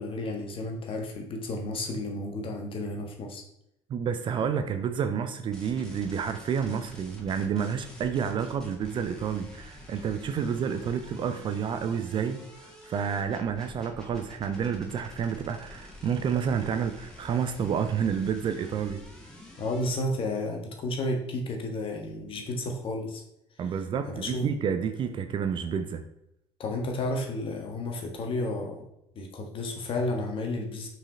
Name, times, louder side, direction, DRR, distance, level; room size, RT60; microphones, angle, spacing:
voice 1, 0.0-3.4 19.6-23.2 24.1-24.5 26.6-28.8 29.1-30.9, left 1 dB, 35° left, 3 dB, 1.5 m, -32 dB
voice 2, 3.9-12.4 12.8-19.0 23.6-26.0, right 7 dB, 35° right, 9 dB, 0.6 m, -29 dB
sound 1, 5.5-20.0, left 1 dB, 5° left, 2.4 m, -48 dB
5.8 x 4.8 x 4.1 m, 0.80 s
figure-of-eight pair, 60°, 15 cm